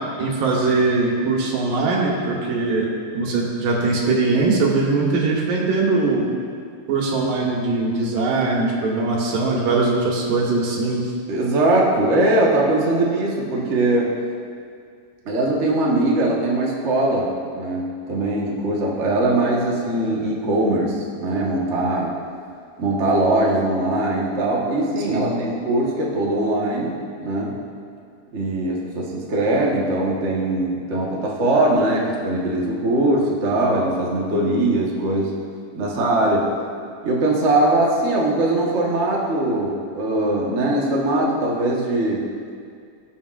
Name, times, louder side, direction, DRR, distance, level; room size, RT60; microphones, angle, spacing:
voice 1, 0.2-2.9 3.1-6.3 6.9-11.1 25.1-25.4, right 3 dB, 90° right, -2 dB, 3.1 m, -21 dB
voice 2, 11.3-14.1 15.2-22.1 22.8-27.6 28.3-35.4 35.7-36.5 37.0-42.3, right 2 dB, 65° right, -4 dB, 0.7 m, -21 dB
21.0 x 7.0 x 2.5 m, 2.2 s
omnidirectional pair, 3.8 m